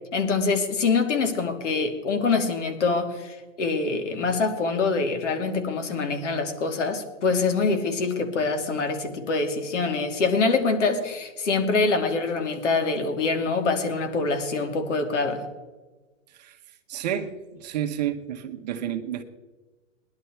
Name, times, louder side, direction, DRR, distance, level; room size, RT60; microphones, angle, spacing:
voice 1, 0.1-15.4, left 4 dB, 65° left, 6 dB, 2.7 m, -25 dB
voice 2, 16.9-17.3 17.6-19.2, right 10 dB, 35° right, 5 dB, 1.0 m, -30 dB
19.5 x 11.5 x 4.6 m, 1.2 s
hypercardioid pair, 170°, 39 cm